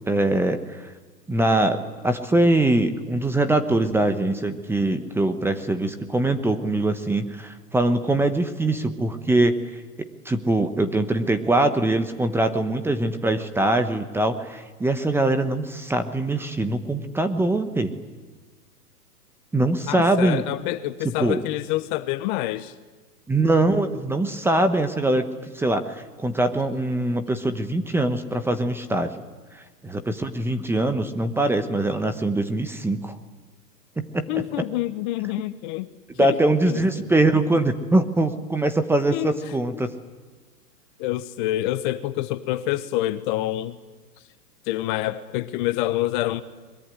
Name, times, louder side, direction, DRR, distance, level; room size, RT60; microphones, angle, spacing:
voice 1, 0.1-0.9 1.3-9.6 10.0-17.9 19.5-20.4 21.2-21.4 23.3-25.3 25.5-29.1 29.5-33.2 34.0-34.3 36.2-39.9, right 2 dB, 5° right, 9 dB, 1.0 m, -23 dB
voice 2, 19.9-22.7 34.3-35.9 36.1-36.4 36.6-37.1 39.1-39.4 41.0-43.8 44.7-46.4, left 15 dB, 30° left, 13 dB, 0.9 m, -27 dB
22.0 x 22.0 x 9.9 m, 1.3 s
hypercardioid pair, 130°, 47 cm